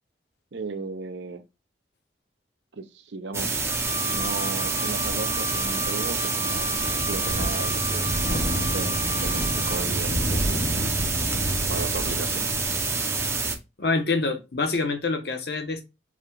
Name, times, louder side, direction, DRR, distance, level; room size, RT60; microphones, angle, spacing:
voice 1, 0.5-1.4 2.7-3.7 4.0-8.1 8.3-10.1 11.6-12.8, right 4 dB, 80° right, 0.6 m, -36 dB
sound 1, 3.3-13.6, right 3 dB, 15° right, 0.5 m, -27 dB
Wind instrument woodwind instrument, 3.6-9.9, left 2 dB, 45° left, 0.5 m, -36 dB
Wind, 6.8-12.4, equal, 85° left, 1.2 m, -31 dB
voice 2, 13.8-15.8, left 3 dB, 60° left, 0.8 m, -26 dB
4.8 x 2.2 x 3.6 m
head